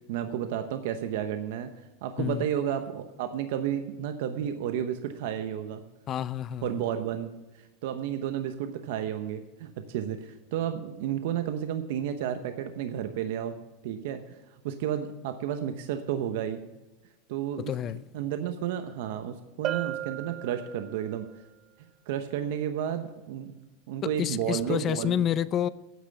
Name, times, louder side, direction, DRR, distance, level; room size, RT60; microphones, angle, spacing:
voice 1, 0.1-1.7 2.0-5.8 6.6-7.3 7.8-13.6 13.8-14.4 14.6-16.6 17.3-17.7 18.1-21.3 22.1-23.6 23.9-25.2, right 10 dB, 70° right, 0.9 m, -32 dB
voice 2, 2.2-2.5 6.1-6.7 17.6-18.0 24.0-25.7, left 10 dB, 35° left, 0.4 m, -29 dB
Bell, 19.6-21.2, right 13 dB, 40° right, 0.3 m, -35 dB
9.4 x 8.3 x 6.8 m
supercardioid pair, 135°, 0 cm